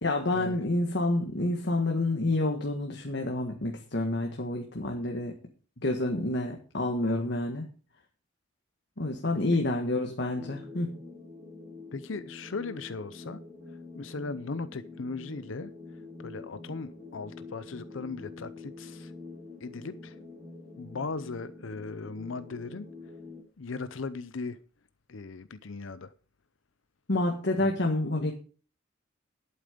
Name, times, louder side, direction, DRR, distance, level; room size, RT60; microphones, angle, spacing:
voice 1, 0.0-5.3 5.8-7.6 9.0-11.0 27.1-28.3, left 2 dB, 55° left, 1.6 m, -28 dB
sound 1, 10.3-23.4, left 3 dB, 20° right, 4.4 m, -46 dB
voice 2, 11.9-13.4 13.9-15.7 16.2-19.1 19.6-20.2 20.8-22.9 23.6-24.6 25.1-26.1 27.6-27.7, left 4 dB, 70° left, 0.6 m, -38 dB
11.5 x 8.8 x 5.1 m
head